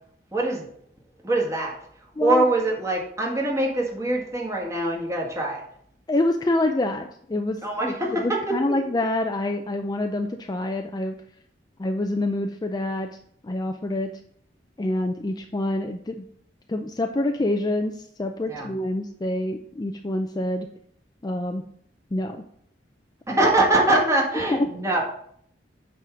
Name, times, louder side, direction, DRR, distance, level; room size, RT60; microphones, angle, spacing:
voice 1, 0.3-0.7 1.2-1.8 2.2-5.6 7.6-8.6 18.5-18.7 23.3-25.0, right 2 dB, 15° right, -2 dB, 1.6 m, -23 dB
voice 2, 6.1-7.6 7.9-8.0 8.2-11.2 11.8-13.1 13.4-14.2 14.8-16.2 16.7-20.7 21.2-21.6 22.1-22.4 24.5-24.7, left 1 dB, 20° left, 6 dB, 0.4 m, -26 dB
8.3 x 3.6 x 6.1 m, 0.65 s
head